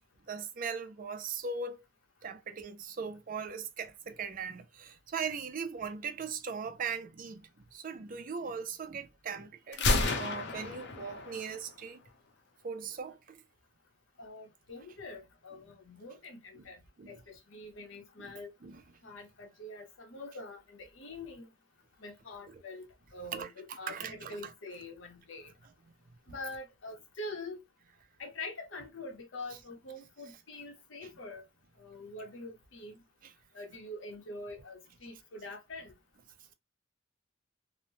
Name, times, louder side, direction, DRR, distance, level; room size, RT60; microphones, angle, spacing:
voice 1, 0.3-1.8 2.2-12.0 12.6-13.4 16.5-16.6 17.0-17.2 18.2-18.3 18.6-18.8 22.5-22.6 23.3-24.5 31.0-31.1 33.2-33.3, right 5 dB, 45° right, 0.4 m, -39 dB
Gunshot gunfire, 9.7-11.7, left 2 dB, 65° left, 0.6 m, -31 dB
voice 2, 14.2-16.8 17.1-18.5 19.0-21.5 22.0-25.5 26.3-27.6 28.2-31.4 31.8-32.9 33.5-35.9, left 2 dB, 90° left, 0.8 m, -45 dB
3.0 x 2.1 x 2.6 m
head